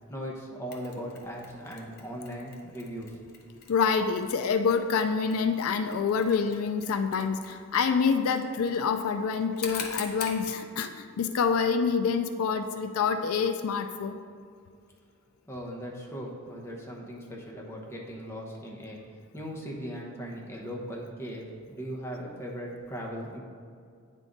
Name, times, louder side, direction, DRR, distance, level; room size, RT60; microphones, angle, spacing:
voice 1, 0.1-3.1 15.5-19.0 19.3-23.4, equal, 10° left, -2 dB, 0.9 m, -38 dB
Mechanisms, 0.7-10.4, left 5 dB, 50° left, 0.7 m, -45 dB
voice 2, 3.7-14.1, left 5 dB, 80° left, 8 dB, 0.4 m, -27 dB
9.0 x 3.7 x 3.9 m, 2.3 s
head